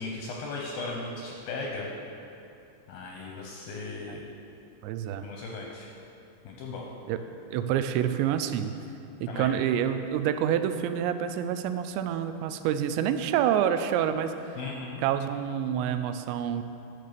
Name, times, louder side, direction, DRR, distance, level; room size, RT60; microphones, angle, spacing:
voice 1, 0.0-1.9 2.9-4.2 5.2-5.9 6.4-6.9 9.3-9.5 14.6-15.0, left 3 dB, 75° left, -1 dB, 2.2 m, -37 dB
voice 2, 4.8-5.3 7.1-7.2 7.5-8.7 9.2-14.6 15.0-16.6, right 9 dB, 85° right, 9 dB, 2.8 m, -27 dB
12.0 x 6.6 x 6.7 m, 2.7 s
omnidirectional pair, 5.2 m